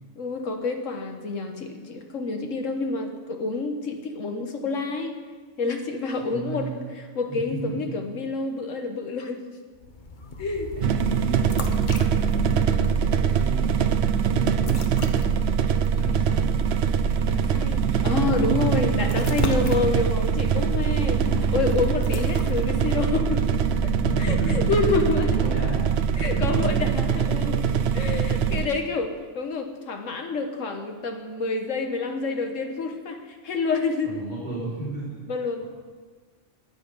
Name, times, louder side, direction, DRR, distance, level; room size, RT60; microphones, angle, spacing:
voice 1, 0.2-5.1 5.6-9.5 10.4-10.7 14.4-14.7 17.3-21.2 21.5-23.5 23.8-23.9 24.2-25.4 26.2-34.2 35.3-35.6, left 4 dB, 90° left, 5 dB, 1.6 m, -28 dB
voice 2, 6.3-6.9 7.3-8.0 10.8-13.7 14.2-15.3 15.9-16.5 17.7-19.7 21.1-21.9 24.0-24.7 25.2-25.8 26.1-26.6 34.0-35.2, right 3 dB, 35° right, -10 dB, 3.7 m, -33 dB
sound 1, 9.8-25.7, left 3 dB, 40° left, 1.1 m, -35 dB
sound 2, 10.8-28.7, right 7 dB, 65° right, 0.8 m, -23 dB
20.5 x 7.0 x 5.5 m, 1.5 s
omnidirectional pair, 1.3 m